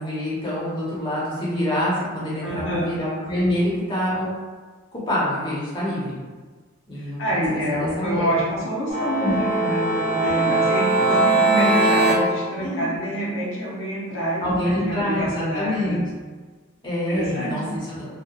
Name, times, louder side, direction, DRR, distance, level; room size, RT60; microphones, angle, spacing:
voice 1, 0.0-4.3 4.9-6.2 6.9-7.4 7.7-8.3 9.2-9.4 10.2-10.5 12.6-12.9 14.4-16.0 16.8-17.6 18.0-18.1, left 1 dB, 20° left, -8 dB, 0.6 m, -26 dB
voice 2, 2.4-2.9 6.9-16.1 17.1-18.0, equal, 60° left, -6 dB, 0.6 m, -27 dB
sound 1, 8.9-12.1, right 2 dB, 25° right, 0.7 m, -20 dB
2.8 x 2.1 x 2.3 m, 1.4 s
head